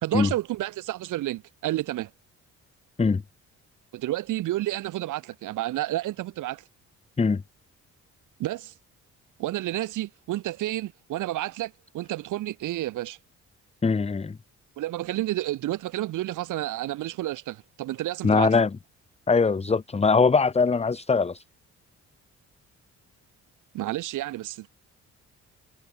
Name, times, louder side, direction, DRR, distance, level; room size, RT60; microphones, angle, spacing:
voice 1, 0.0-2.1 3.9-6.6 8.4-8.7 9.4-13.2 14.8-18.5 23.7-24.7, right 15 dB, 85° right, 3.1 m, -30 dB
voice 2, 13.8-14.4 18.2-18.7 19.3-21.4, left 4 dB, 20° left, 0.9 m, -21 dB
cardioid pair, 90°, 30 cm